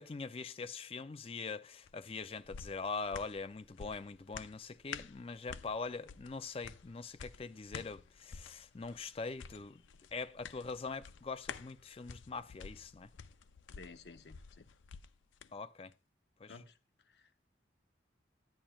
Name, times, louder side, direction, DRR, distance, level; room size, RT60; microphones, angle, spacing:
voice 1, 0.0-9.8 10.1-13.1 15.5-15.9 16.4-16.5, left 4 dB, 30° left, 0.4 m, -43 dB
sound 1, 1.8-15.5 15.9-16.0, left 6 dB, 90° left, 0.5 m, -51 dB
voice 2, 13.8-14.7 16.5-17.5, left 4 dB, 65° left, 0.8 m, -55 dB
11.0 x 10.0 x 2.3 m
head